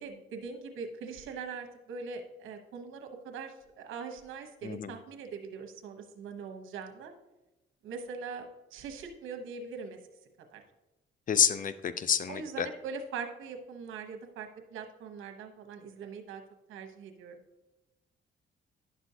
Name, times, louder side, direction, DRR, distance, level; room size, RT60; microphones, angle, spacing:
voice 1, 0.0-7.1 7.8-10.0 10.5-10.6 12.3-16.4 16.7-17.4, right 5 dB, 85° right, 4 dB, 1.0 m, -42 dB
voice 2, 4.6-4.9 11.3-12.7, left 7 dB, 45° left, 14 dB, 0.5 m, -28 dB
10.5 x 6.2 x 2.8 m, 1.0 s
cardioid pair, 90°, 20 cm